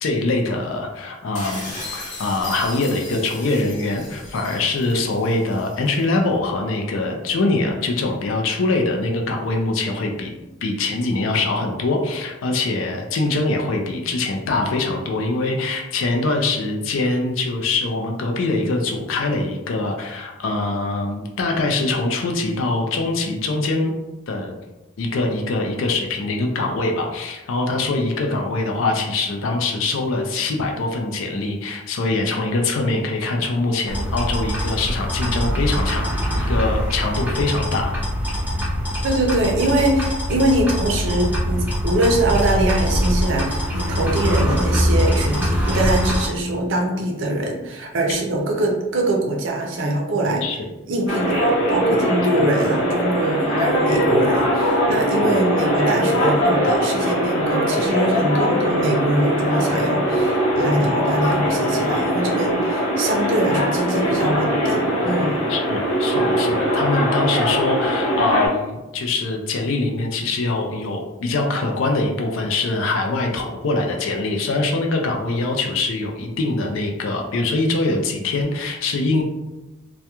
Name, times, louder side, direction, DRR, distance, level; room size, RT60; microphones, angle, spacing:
voice 1, 0.0-10.3 10.6-23.9 24.3-24.5 25.0-36.0 36.4-38.0 48.1-48.2 50.4-50.6 55.2-55.4 65.5-79.2, left 2 dB, 70° left, 2 dB, 0.4 m, -23 dB
sound 1, 1.3-6.0, left 2 dB, 35° left, 0.8 m, -36 dB
sound 2, 33.9-46.3, equal, 10° right, 0.4 m, -23 dB
voice 2, 39.0-50.4 50.9-65.4, right 1 dB, 65° right, 0 dB, 0.5 m, -22 dB
sound 3, 51.1-68.5, equal, 85° left, 0.9 m, -21 dB
2.3 x 2.2 x 2.8 m, 1.0 s
head